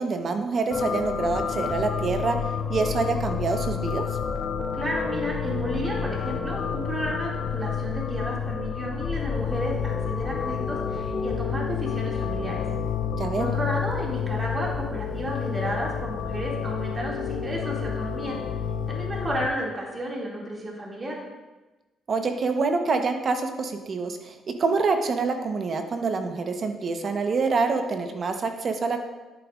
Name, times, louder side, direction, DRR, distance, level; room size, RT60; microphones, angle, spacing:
voice 1, 0.0-2.4 2.7-4.1 13.2-13.5 22.1-29.0, right 4 dB, 50° right, 6 dB, 1.0 m, -26 dB
sound 1, 0.7-19.5, left 7 dB, 55° left, 0.6 m, -29 dB
voice 2, 4.7-12.6 13.4-18.4 18.9-21.2, right 1 dB, 25° right, -3 dB, 2.4 m, -32 dB
10.5 x 8.9 x 2.5 m, 1.1 s
cardioid pair, 90°, 0 cm